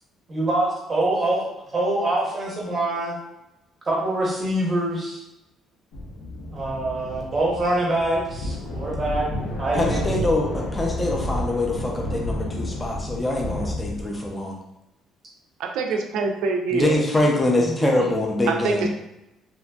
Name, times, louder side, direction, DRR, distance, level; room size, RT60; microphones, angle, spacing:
voice 1, 0.3-3.2 3.9-5.2 6.5-9.3 9.6-10.1 17.6-18.1, right 1 dB, 20° right, -4 dB, 0.7 m, -25 dB
sound 1, 5.9-14.3, left 1 dB, 75° left, 0.5 m, -31 dB
voice 2, 9.7-14.6 16.7-18.9, left 1 dB, 10° left, -1 dB, 0.4 m, -24 dB
voice 3, 15.6-16.9 18.5-18.9, right 4 dB, 70° right, 3 dB, 0.4 m, -24 dB
2.8 x 2.5 x 2.2 m, 0.91 s
cardioid pair, 175°, 0 cm